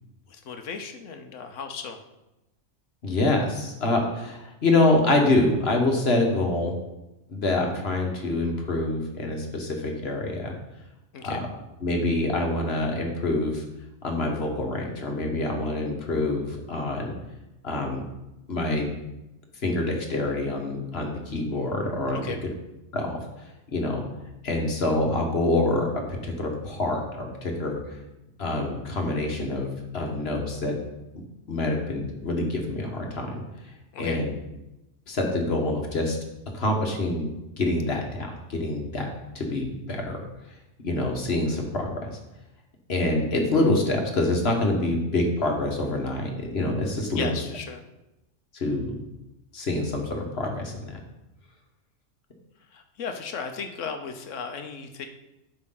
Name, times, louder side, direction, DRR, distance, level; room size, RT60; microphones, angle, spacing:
voice 1, 0.3-2.0 11.1-11.4 22.1-22.4 33.9-34.2 47.1-47.8 52.7-55.1, left 5 dB, 75° left, 6 dB, 1.2 m, -35 dB
voice 2, 3.0-6.7 7.3-10.5 11.2-11.5 11.8-13.6 14.0-17.1 17.6-18.0 18.5-18.9 19.6-22.3 22.9-23.2 23.7-24.0 24.4-28.0 28.4-30.8 31.5-33.4 34.0-34.3 35.1-36.2 36.5-37.3 37.6-39.1 39.3-40.2 40.8-42.1 42.9-47.4 48.5-48.9 49.5-51.0, left 2 dB, 55° left, 2 dB, 1.5 m, -26 dB
12.0 x 5.2 x 3.8 m, 0.95 s
omnidirectional pair, 1.3 m